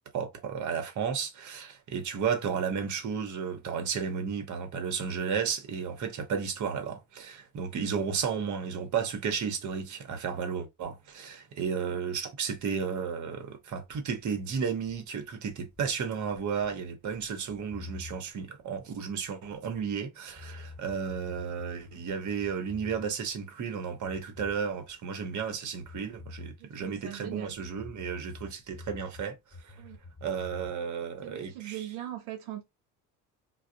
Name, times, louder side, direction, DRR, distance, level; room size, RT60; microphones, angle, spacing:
voice 1, 0.1-29.4 29.6-29.8 30.2-31.8, right 6 dB, 45° right, 0.9 m, -33 dB
sound 1, 13.9-20.0 20.3-23.4 23.6-25.5 25.8-29.2 29.5-30.7, left 3 dB, 15° left, 1.2 m, -48 dB
voice 2, 26.6-27.6 29.8-30.0 31.2-32.6, right 13 dB, 90° right, 0.5 m, -40 dB
2.4 x 2.0 x 2.5 m
hypercardioid pair, 65°, 42 cm